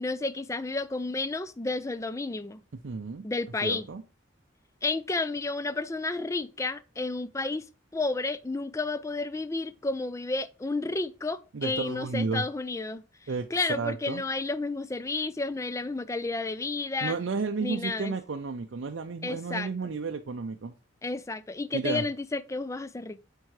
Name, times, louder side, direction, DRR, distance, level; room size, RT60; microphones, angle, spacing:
voice 1, 0.0-2.6 3.2-3.9 4.8-7.6 7.9-13.0 13.5-17.1 17.6-18.2 19.2-19.7 21.0-23.2, left 3 dB, 15° left, 0.3 m, -31 dB
voice 2, 2.8-3.3 3.6-4.0 11.5-12.4 13.3-14.2 17.0-20.7 21.7-22.0, right 4 dB, 65° right, 0.5 m, -32 dB
8.1 x 4.5 x 3.2 m
head